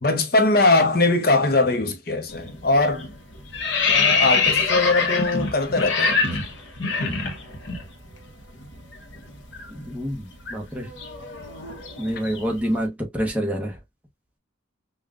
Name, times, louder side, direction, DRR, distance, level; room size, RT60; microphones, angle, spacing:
voice 1, 0.0-3.1 3.9-6.2, left 2 dB, 50° left, 0.8 m, -21 dB
sound 1, 2.3-2.6 2.9-7.8 8.1-8.3 8.6-12.7, left 4 dB, 75° left, 1.0 m, -24 dB
voice 2, 10.5-10.9 12.0-13.7, equal, 5° right, 0.9 m, -26 dB
5.4 x 2.4 x 2.4 m
head